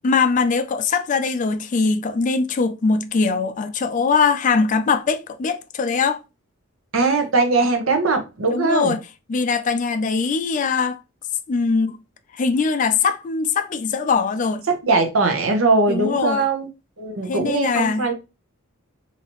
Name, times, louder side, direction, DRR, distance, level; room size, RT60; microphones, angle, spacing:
voice 1, 0.0-6.2 8.5-9.0 9.3-11.0 11.5-12.0 12.4-14.6 15.9-16.4 17.3-18.1, left 4 dB, 35° left, 0.3 m, -21 dB
voice 2, 6.9-8.9 14.7-16.7 17.0-18.1, right 3 dB, 75° right, 0.9 m, -20 dB
4.0 x 2.8 x 3.0 m
head